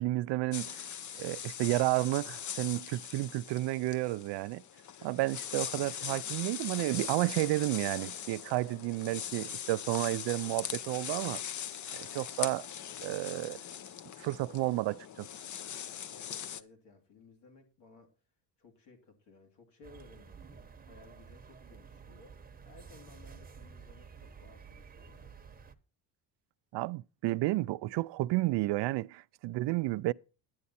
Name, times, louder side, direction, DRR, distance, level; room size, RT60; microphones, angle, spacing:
voice 1, 0.0-0.8 1.2-4.6 5.0-11.4 11.9-12.7 13.0-13.6 14.2-15.3 26.7-30.1, right 19 dB, 75° right, 0.5 m, -31 dB
sound 1, 0.5-16.6, left 9 dB, 45° left, 0.7 m, -41 dB
voice 2, 16.0-18.2 18.6-25.4, left 3 dB, 75° left, 3.0 m, -59 dB
sound 2, 19.8-25.7, right 6 dB, 20° right, 0.9 m, -52 dB
10.5 x 9.7 x 4.2 m
cardioid pair, 115°, 42 cm